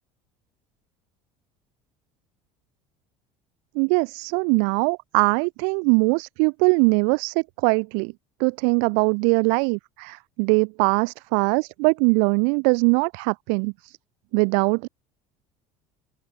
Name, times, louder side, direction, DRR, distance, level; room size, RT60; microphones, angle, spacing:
voice 1, 3.8-8.1 8.4-14.0 14.3-14.9, right 40 dB or more, 80° right, 3.5 m, -21 dB
open air
cardioid pair, 145°, 12 cm